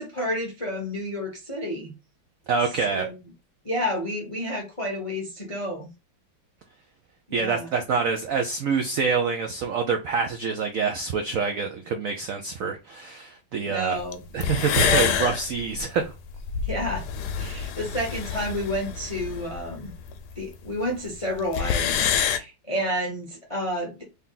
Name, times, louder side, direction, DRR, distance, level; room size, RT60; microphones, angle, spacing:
voice 1, 0.0-1.9 2.9-3.2 3.6-5.9 7.3-7.7 13.6-14.2 14.8-15.2 16.6-17.1 17.4-19.9 20.4-24.0, equal, 40° left, 0.4 m, -30 dB
voice 2, 2.5-3.0 7.3-14.0 14.3-16.1, right 5 dB, 75° right, 0.7 m, -26 dB
sound 1, 14.1-14.2 14.4-20.4 20.7-20.8 21.0-21.1 21.3-22.4, left 8 dB, 70° left, 1.1 m, -27 dB
3.5 x 2.8 x 3.7 m
omnidirectional pair, 2.1 m